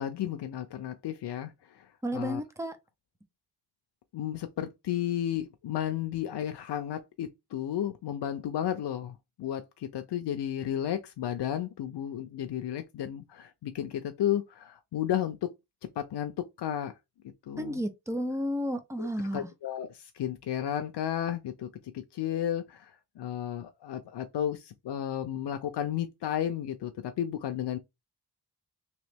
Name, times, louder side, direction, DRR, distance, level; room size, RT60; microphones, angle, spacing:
voice 1, 0.0-2.4 4.1-15.5 16.0-16.9 17.4-17.8 19.0-21.7 21.9-27.8, left 10 dB, 85° left, 0.5 m, -33 dB
voice 2, 2.0-2.8 17.6-19.5, equal, 5° right, 0.5 m, -32 dB
3.1 x 3.0 x 3.3 m
wide cardioid pair, 135°, 40 cm